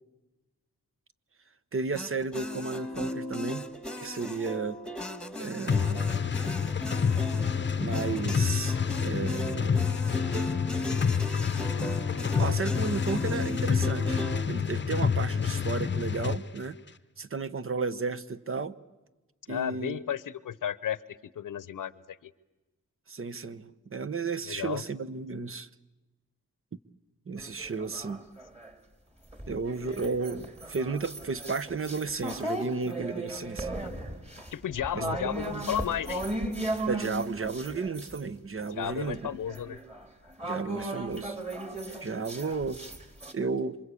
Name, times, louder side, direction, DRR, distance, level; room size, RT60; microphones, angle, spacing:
voice 1, 1.7-3.7 4.0-4.8 5.4-6.1 7.8-10.0 11.0-11.3 12.2-16.8 17.2-18.7 19.5-20.0 23.1-25.7 27.3-28.2 29.5-33.7 34.9-35.0 35.5-35.7 36.9-39.3 40.4-41.4 42.0-42.8 43.3-43.8, right 4 dB, 45° right, 14 dB, 1.0 m, -33 dB
sound 1, 1.9-14.4, left 1 dB, 5° left, 1.7 m, -36 dB
sound 2, 5.7-16.4, left 6 dB, 35° left, 0.8 m, -28 dB
voice 2, 19.5-21.0 21.3-22.3 24.5-24.8 34.5-36.2 38.7-39.8, left 9 dB, 85° left, 18 dB, 0.9 m, -33 dB
sound 3, 27.4-28.7 29.3-38.2 38.6-43.3, right 1 dB, 20° right, 3.6 m, -37 dB
27.5 x 25.5 x 8.4 m, 1.1 s
cardioid pair, 80°, 31 cm